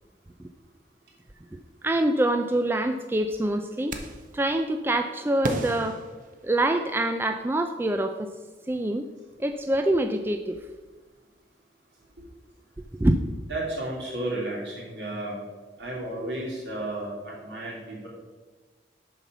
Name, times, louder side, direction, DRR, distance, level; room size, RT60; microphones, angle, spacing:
voice 1, 1.5-3.9 4.3-6.0 6.4-8.3 8.7-9.1 9.4-10.6 13.0-13.2, right 1 dB, 15° right, 6 dB, 0.3 m, -25 dB
sound 1, 3.9-4.4 5.4-7.0, right 2 dB, 45° right, 0.8 m, -34 dB
voice 2, 13.5-15.4 15.8-18.1, right 1 dB, 70° right, -4 dB, 2.9 m, -33 dB
7.0 x 5.7 x 6.1 m, 1.3 s
head